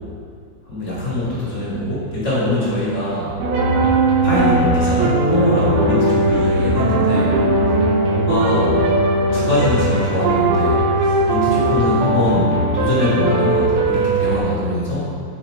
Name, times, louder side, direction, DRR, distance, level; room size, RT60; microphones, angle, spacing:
voice 1, 0.7-3.4 4.2-7.4 8.1-8.8 9.3-15.1, left 1 dB, 30° left, -9 dB, 1.7 m, -22 dB
sound 1, 3.4-14.4, right 2 dB, 85° right, 2.5 m, -18 dB
7.3 x 5.1 x 4.8 m, 2.2 s
omnidirectional pair, 3.7 m